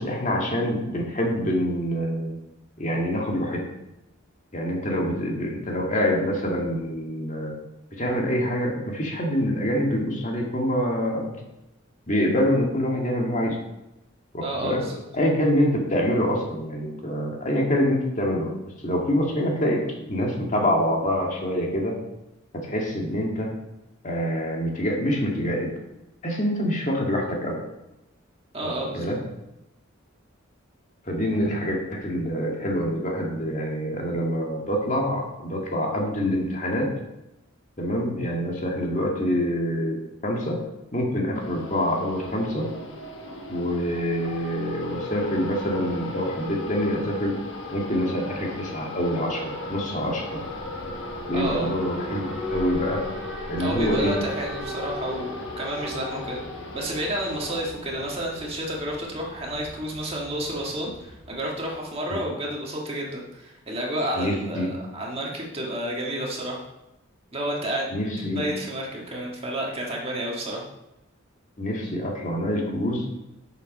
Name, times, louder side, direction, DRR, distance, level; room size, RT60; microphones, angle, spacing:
voice 1, 0.0-2.4 2.8-3.6 4.5-7.5 8.0-11.3 12.1-13.6 14.3-14.8 15.1-18.5 18.8-19.8 20.1-22.0 22.5-23.5 24.0-25.7 26.2-27.6 28.6-29.2 31.0-36.9 37.8-40.6 40.9-42.7 43.5-47.4 47.7-50.4 51.3-53.1 53.5-54.2 62.1-62.2 64.1-64.7 67.9-68.4 71.6-73.1, equal, 35° left, 0 dB, 1.8 m, -26 dB
voice 2, 14.4-15.0 28.5-29.2 51.3-51.7 53.6-56.4 56.7-66.6 67.3-67.9 68.3-70.6, right 1 dB, 30° right, -2 dB, 1.8 m, -30 dB
sound 1, 41.4-57.6, left 2 dB, 60° left, 1.5 m, -36 dB
Alarm, 49.9-62.0, equal, 10° right, 1.8 m, -39 dB
8.1 x 7.0 x 5.5 m, 0.93 s
head